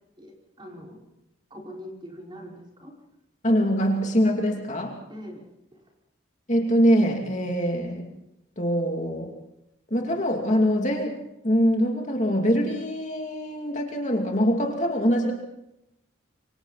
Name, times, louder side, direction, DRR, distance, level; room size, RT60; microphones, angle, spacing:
voice 1, 0.2-1.0 1.5-2.9 5.1-5.4 5.7-5.8, equal, 25° right, -1 dB, 5.0 m, -42 dB
voice 2, 3.4-5.0 6.5-8.1 8.6-9.3 9.9-11.2 11.4-15.3, equal, 35° left, 1 dB, 2.7 m, -23 dB
27.5 x 25.0 x 4.2 m, 0.84 s
head